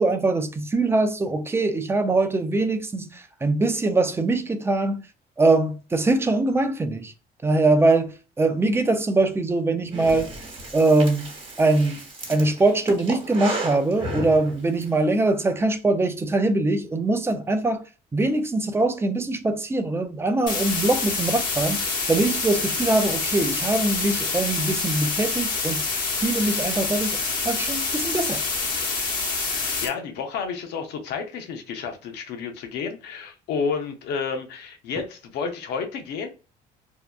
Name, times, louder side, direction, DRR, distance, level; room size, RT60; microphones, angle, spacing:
voice 1, 0.0-5.0 5.4-7.1 7.4-8.1 8.4-10.3 10.7-11.3 11.6-12.0 12.3-17.8 18.1-25.8 26.2-27.2 27.4-28.4, right 2 dB, 15° right, 0.4 m, -22 dB
Breathing, 9.9-14.9, right 2 dB, 30° right, 1.2 m, -34 dB
sound 1, 20.5-29.9, left 4 dB, 50° left, 1.2 m, -26 dB
voice 2, 29.4-36.3, left 5 dB, 80° left, 0.7 m, -31 dB
2.7 x 2.2 x 2.3 m
cardioid pair, 110°, 17 cm